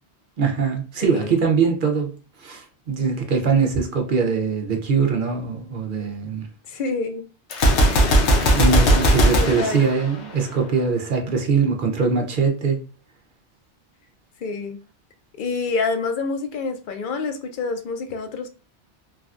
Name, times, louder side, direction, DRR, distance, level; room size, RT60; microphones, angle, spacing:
voice 1, 0.4-2.1 2.4-6.5 8.5-12.8, right 5 dB, 55° right, 0.7 m, -22 dB
voice 2, 1.0-1.4 6.7-7.3 9.3-9.8 14.4-14.8 15.4-18.5, left 4 dB, 60° left, 0.6 m, -27 dB
Gunshot gunfire, 7.5-10.6, equal, 80° left, 0.9 m, -18 dB
3.2 x 2.2 x 2.4 m
omnidirectional pair, 1.1 m